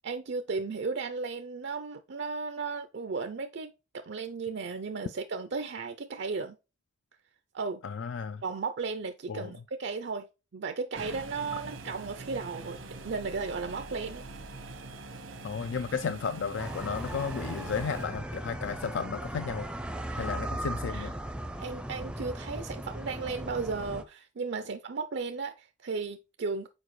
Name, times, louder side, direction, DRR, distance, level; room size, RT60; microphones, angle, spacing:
voice 1, 0.0-6.6 7.5-7.8 8.4-10.3 10.5-14.2 20.1-20.3 20.9-21.1 21.6-26.7, right 4 dB, 60° right, 0.5 m, -35 dB
voice 2, 7.8-8.4 9.3-9.5 15.4-19.7 20.2-21.1, left 6 dB, 65° left, 0.4 m, -33 dB
sound 1, 10.9-18.1, right 3 dB, 85° right, 1.0 m, -43 dB
sound 2, 16.6-24.0, right 1 dB, 5° right, 0.5 m, -37 dB
7.0 x 4.6 x 3.1 m
head